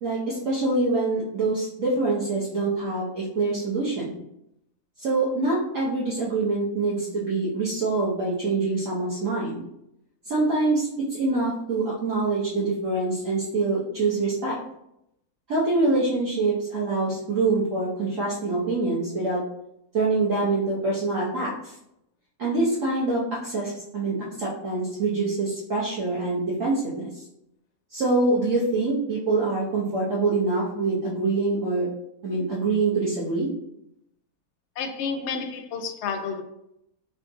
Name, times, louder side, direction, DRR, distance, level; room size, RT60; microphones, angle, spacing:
voice 1, 0.0-4.2 5.0-9.6 10.2-14.6 15.5-19.4 19.9-21.7 22.4-27.2 27.9-31.9 32.2-33.5, right 3 dB, 60° right, -7 dB, 1.2 m, -25 dB
voice 2, 34.8-36.4, left 5 dB, 70° left, 5 dB, 0.6 m, -30 dB
3.5 x 2.5 x 3.7 m, 0.79 s
omnidirectional pair, 1.7 m